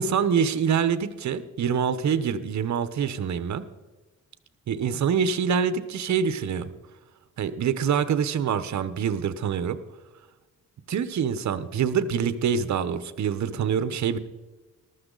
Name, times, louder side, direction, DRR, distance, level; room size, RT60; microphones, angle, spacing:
voice 1, 0.0-3.6 4.7-6.7 7.4-9.8 10.9-14.2, right 7 dB, 65° right, 13 dB, 0.9 m, -25 dB
14.5 x 13.0 x 3.9 m, 1.2 s
cardioid pair, 95°, 30 cm